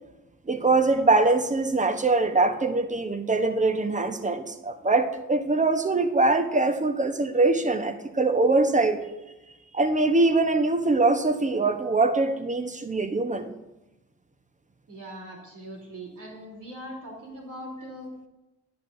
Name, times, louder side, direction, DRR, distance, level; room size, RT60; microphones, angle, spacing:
voice 1, 0.5-9.0 9.7-13.5, right 3 dB, 20° right, 8 dB, 1.0 m, -23 dB
voice 2, 14.9-18.1, equal, 55° right, -2 dB, 3.4 m, -41 dB
10.5 x 9.8 x 2.7 m, 0.99 s
hypercardioid pair, 45°, 36 cm